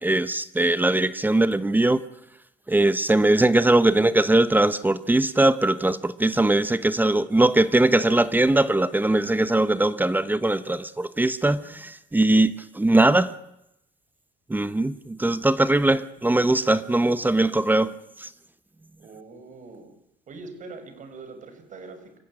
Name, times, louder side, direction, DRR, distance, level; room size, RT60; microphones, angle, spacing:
voice 1, 0.0-2.0 2.7-13.3 14.5-17.9 18.2-18.3, right 2 dB, 10° right, 1.0 m, -21 dB
voice 2, 19.0-20.0 20.3-22.2, right 3 dB, 50° right, 5.9 m, -42 dB
27.0 x 15.5 x 10.0 m
cardioid pair, 110°, 17 cm